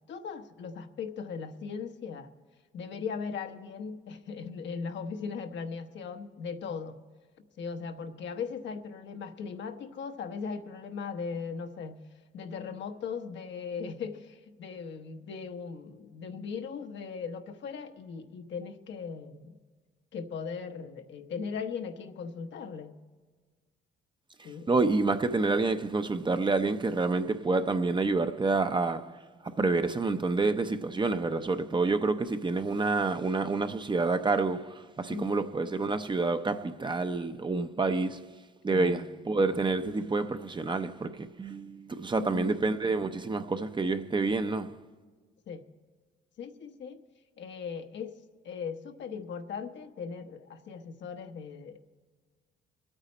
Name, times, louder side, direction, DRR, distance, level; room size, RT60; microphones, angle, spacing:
voice 1, 0.1-2.3 2.7-7.0 7.6-12.0 12.3-19.6 20.1-22.9 24.4-24.7 35.1-35.5 38.7-39.0 42.2-42.6 45.5-45.6 46.4-47.0 47.4-48.1 48.4-51.8, left 5 dB, 65° left, 1.0 m, -38 dB
voice 2, 24.4-44.8, right 3 dB, 25° right, 0.7 m, -28 dB
23.0 x 9.0 x 4.3 m
cardioid pair, 90°, 20 cm